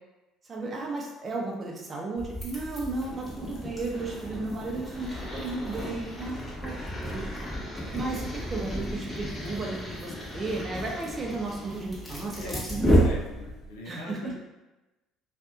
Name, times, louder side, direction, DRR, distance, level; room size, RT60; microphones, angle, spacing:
voice 1, 0.5-6.7 7.0-7.2 7.8-13.1 13.9-14.3, right 3 dB, 35° right, -1 dB, 0.7 m, -34 dB
sound 1, 2.2-13.7, equal, 10° left, 1.1 m, -32 dB
voice 2, 6.2-6.5 9.6-9.8 12.2-12.6 13.0-14.4, left 2 dB, 85° left, -1 dB, 0.5 m, -43 dB
2.6 x 2.5 x 2.3 m, 1.1 s
hypercardioid pair, 65°, 0 cm